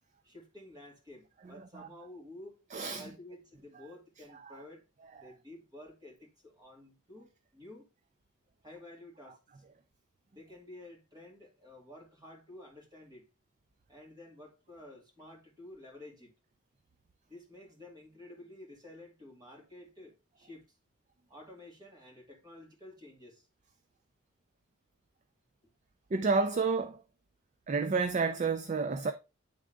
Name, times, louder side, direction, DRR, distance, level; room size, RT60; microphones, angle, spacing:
voice 1, 0.2-2.6 3.0-4.8 5.1-7.9 8.6-9.6 10.3-13.2 13.9-16.3 17.3-20.8 21.3-23.5, left 1 dB, 20° right, 2.4 m, -51 dB
voice 2, 1.4-1.9 2.7-3.1 3.7-3.9 4.3-4.6 5.2-5.3 26.1-27.0 27.7-29.1, right 4 dB, 35° right, 0.4 m, -31 dB
9.6 x 3.7 x 3.4 m
head